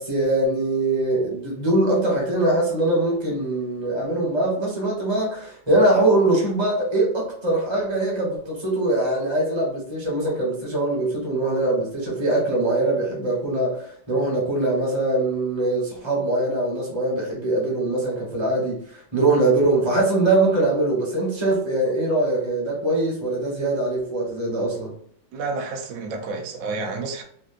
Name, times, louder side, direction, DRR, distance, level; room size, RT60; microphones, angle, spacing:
voice 1, 0.0-24.9, right 2 dB, 20° right, -4 dB, 0.9 m, -22 dB
voice 2, 25.3-27.2, right 3 dB, 65° right, 2 dB, 0.8 m, -30 dB
3.4 x 2.6 x 2.5 m, 0.63 s
omnidirectional pair, 2.0 m